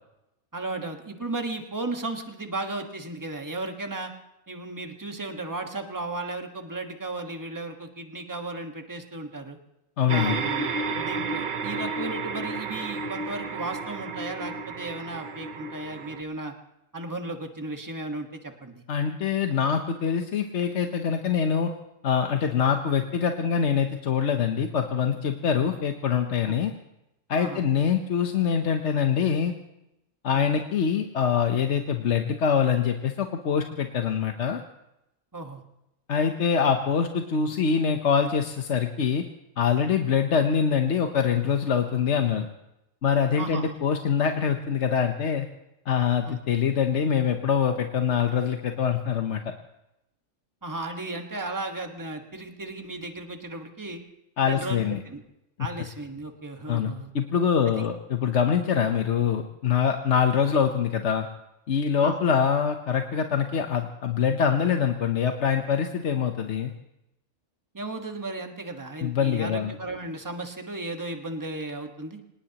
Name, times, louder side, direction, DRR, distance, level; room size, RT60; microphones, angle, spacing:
voice 1, 0.5-4.1 4.5-9.6 10.1-16.5 16.9-18.8 26.5-26.6 27.4-27.6 30.3-30.4 35.3-35.6 43.3-43.7 46.2-46.4 50.6-54.0 54.4-55.2 55.6-57.1 57.6-57.9 62.0-62.2 67.7-72.2, right 2 dB, 15° right, 4 dB, 1.4 m, -35 dB
voice 2, 10.0-10.4 18.9-21.7 22.0-26.7 27.3-29.5 30.2-34.6 36.1-39.2 39.6-42.5 43.0-45.5 45.9-49.4 54.4-55.0 56.7-61.3 61.7-66.7 69.0-69.7, left 7 dB, 60° left, 5 dB, 1.2 m, -24 dB
sound 1, 10.1-16.2, right 4 dB, 45° right, 0.8 m, -32 dB
25.5 x 19.0 x 2.9 m, 0.88 s
omnidirectional pair, 1.4 m